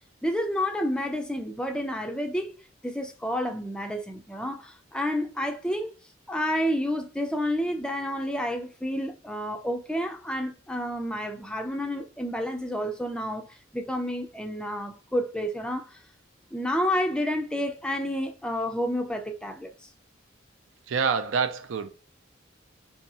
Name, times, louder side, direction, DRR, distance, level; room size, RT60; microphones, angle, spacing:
voice 1, 0.2-2.5 2.8-5.9 6.3-13.5 13.7-15.8 16.5-19.7, equal, 5° left, 0.3 m, -30 dB
voice 2, 20.9-21.9, right 5 dB, 80° right, 0.4 m, -26 dB
2.7 x 2.7 x 4.0 m
head